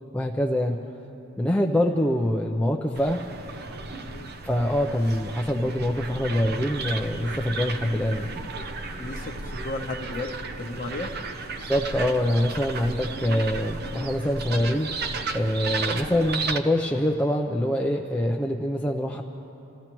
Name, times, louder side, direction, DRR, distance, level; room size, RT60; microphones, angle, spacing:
voice 1, 0.1-0.8 1.4-3.2 4.4-8.3 11.7-19.2, equal, 5° left, 0 dB, 0.5 m, -25 dB
sound 1, 2.9-16.6, right 3 dB, 50° right, 0.7 m, -34 dB
voice 2, 9.0-10.3 10.6-11.1 14.6-14.7, left 2 dB, 45° left, 2 dB, 0.9 m, -35 dB
29.0 x 14.5 x 3.0 m, 2.9 s
head